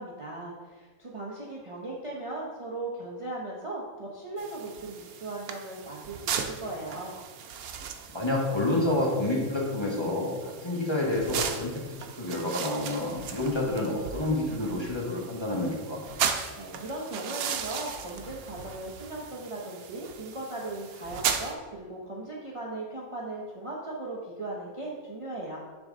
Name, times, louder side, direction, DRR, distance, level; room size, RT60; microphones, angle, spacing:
voice 1, 0.0-7.1 16.6-25.6, right 2 dB, 30° right, -4 dB, 0.7 m, -38 dB
sound 1, 4.4-21.5, right 7 dB, 90° right, 1.1 m, -37 dB
voice 2, 8.1-11.8 12.2-16.0, left 1 dB, 20° left, -3 dB, 1.1 m, -28 dB
9.6 x 3.9 x 3.7 m, 1.4 s
omnidirectional pair, 1.5 m